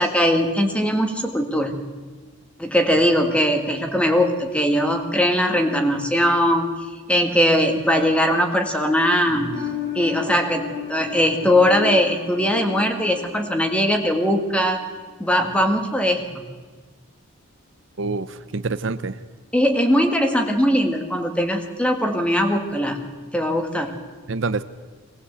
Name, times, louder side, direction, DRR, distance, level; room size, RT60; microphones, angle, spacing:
voice 1, 0.0-1.8 2.6-6.7 7.1-9.5 10.0-14.8 15.2-16.4 19.5-23.1 23.3-24.0, equal, 5° left, 5 dB, 1.7 m, -20 dB
sound 1, 9.3-14.8 15.1-15.2, left 7 dB, 55° left, 4.5 m, -34 dB
voice 2, 18.0-19.2 24.3-24.6, right 3 dB, 60° right, 12 dB, 0.7 m, -26 dB
22.5 x 19.0 x 8.1 m, 1.4 s
head